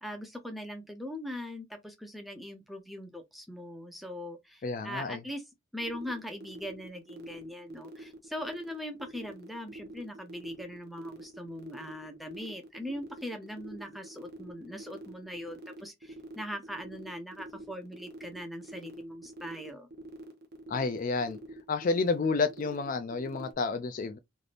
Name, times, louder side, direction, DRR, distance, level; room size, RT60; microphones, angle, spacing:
voice 1, 0.0-5.4 5.7-19.9, equal, ahead, 0.6 m, -41 dB
voice 2, 4.6-5.2 20.7-21.4 21.7-24.2, left 4 dB, 40° left, 0.3 m, -30 dB
sound 1, 5.8-23.5, right 2 dB, 50° right, 0.7 m, -46 dB
3.3 x 2.6 x 2.5 m
head